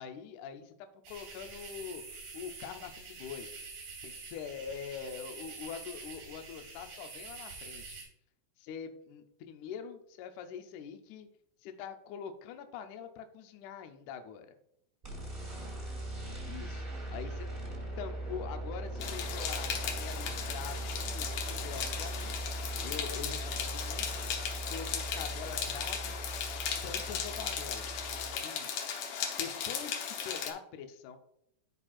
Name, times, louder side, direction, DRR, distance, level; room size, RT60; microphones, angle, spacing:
voice 1, 0.0-2.0 2.3-3.5 4.0-8.0 8.6-11.3 11.6-14.5 16.4-16.8 17.1-17.5 18.0-22.5 22.8-24.1 24.7-26.1 26.8-27.9 28.4-28.7 29.4-31.2, left 7 dB, 85° left, 7 dB, 1.7 m, -44 dB
sound 1, 1.0-8.0, right 4 dB, 80° right, 4.0 m, -47 dB
sound 2, 15.0-28.4, right 1 dB, 35° right, 0.9 m, -40 dB
sound 3, 19.0-30.5, left 7 dB, 70° left, 2.0 m, -37 dB
12.5 x 4.3 x 2.4 m, 0.75 s
omnidirectional pair, 4.3 m